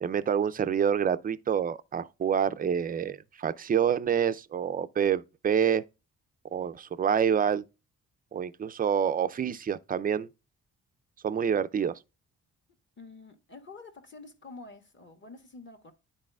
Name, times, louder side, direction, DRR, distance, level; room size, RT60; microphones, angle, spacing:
voice 1, 0.0-5.8 6.5-7.6 8.3-10.3 11.2-12.0, right 8 dB, 25° right, 0.4 m, -27 dB
voice 2, 13.0-15.9, left 3 dB, 35° left, 1.6 m, -48 dB
10.5 x 4.1 x 2.3 m
supercardioid pair, 60°, 33 cm